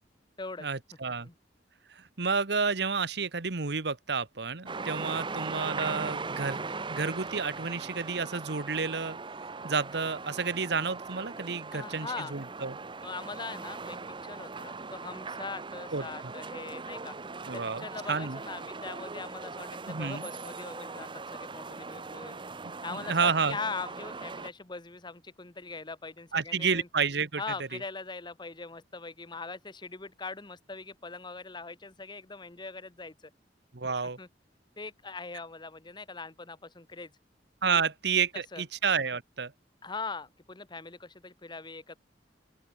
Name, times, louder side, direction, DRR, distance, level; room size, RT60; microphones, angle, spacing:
voice 1, 0.6-1.3 1.9-9.2 9.6-12.8 15.9-16.0 17.5-18.4 19.9-20.3 22.9-23.6 26.3-27.4 33.7-34.2 37.6-39.5, right 5 dB, 65° right, 1.2 m, -30 dB
sound 1, 4.7-24.5, right 4 dB, 25° right, 1.0 m, -40 dB
voice 2, 11.7-12.3 13.0-17.2 17.5-22.4 22.8-26.9 27.4-33.3 34.2-34.3 34.8-37.1 37.7-37.8 38.5-38.6 39.8-42.0, left 4 dB, 25° left, 1.1 m, -41 dB
open air
head